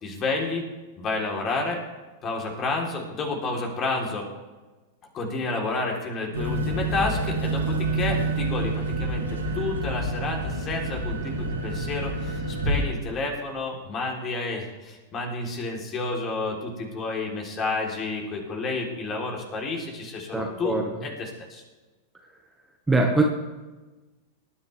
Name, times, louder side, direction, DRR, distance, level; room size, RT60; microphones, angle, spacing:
voice 1, 0.0-0.6 1.0-1.8 2.2-4.3 5.1-21.6, left 3 dB, 35° left, 0 dB, 3.7 m, -30 dB
sound 1, 6.3-12.9, right 2 dB, 85° right, 3.0 m, -28 dB
voice 2, 20.3-20.8 22.9-23.2, right 3 dB, 10° right, 1 dB, 1.7 m, -22 dB
19.5 x 10.0 x 3.5 m, 1.2 s
hypercardioid pair, 100°, 0 cm